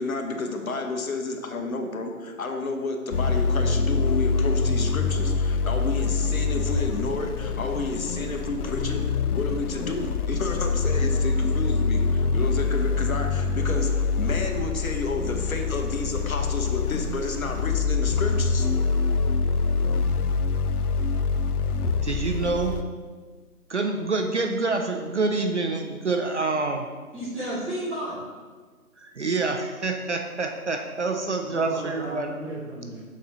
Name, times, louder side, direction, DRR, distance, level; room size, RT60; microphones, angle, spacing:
voice 1, 0.0-18.7, left 3 dB, 65° left, 3 dB, 0.9 m, -31 dB
sound 1, 3.1-22.8, left 4 dB, 80° left, 0.6 m, -25 dB
voice 2, 22.0-22.7 23.7-26.9 29.0-32.6, right 3 dB, 50° right, 4 dB, 0.5 m, -27 dB
voice 3, 27.1-28.2 31.4-33.0, right 1 dB, 5° right, -15 dB, 1.5 m, -33 dB
6.5 x 4.1 x 3.9 m, 1.4 s
figure-of-eight pair, 160°, 45 cm